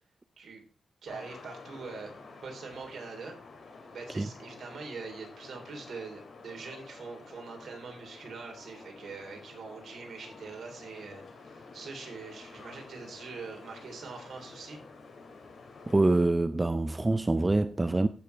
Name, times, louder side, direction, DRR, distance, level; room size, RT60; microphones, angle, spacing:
sound 1, 1.0-16.3, left 3 dB, 60° left, 2.5 m, -50 dB
voice 1, 1.0-2.1 2.4-3.4 3.9-14.8, right 4 dB, 65° right, 3.4 m, -43 dB
voice 2, 15.9-18.1, right 2 dB, 20° right, 0.4 m, -25 dB
15.5 x 6.6 x 3.4 m
wide cardioid pair, 120°, 0 cm